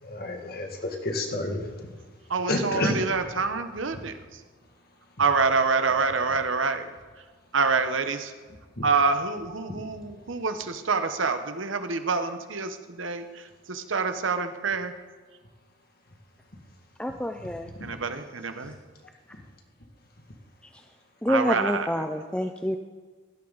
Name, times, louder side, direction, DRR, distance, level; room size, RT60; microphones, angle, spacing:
voice 1, 0.0-1.7 2.5-3.0 8.8-8.9 17.8-17.9, left 1 dB, 50° left, 2 dB, 2.1 m, -29 dB
voice 2, 2.3-4.4 5.2-6.9 7.5-8.3 8.8-14.9 17.8-18.7 21.3-21.9, right 4 dB, 85° right, 8 dB, 1.1 m, -27 dB
voice 3, 17.0-17.7 18.6-18.7 20.7-20.8 21.2-22.8, left 1 dB, 5° left, 5 dB, 0.5 m, -28 dB
17.0 x 12.0 x 4.1 m, 1.5 s
head